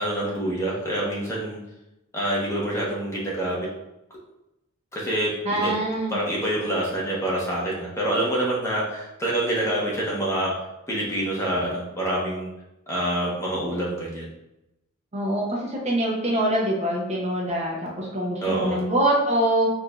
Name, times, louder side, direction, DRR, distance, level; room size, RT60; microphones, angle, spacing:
voice 1, 0.0-1.6 2.1-3.7 4.9-5.7 6.1-10.5 10.9-12.5 12.9-14.3 18.4-18.8, right 1 dB, 15° left, -6 dB, 1.0 m, -26 dB
voice 2, 5.5-6.2 15.1-19.7, right 1 dB, 30° right, -3 dB, 0.6 m, -24 dB
4.6 x 2.6 x 2.3 m, 0.90 s
head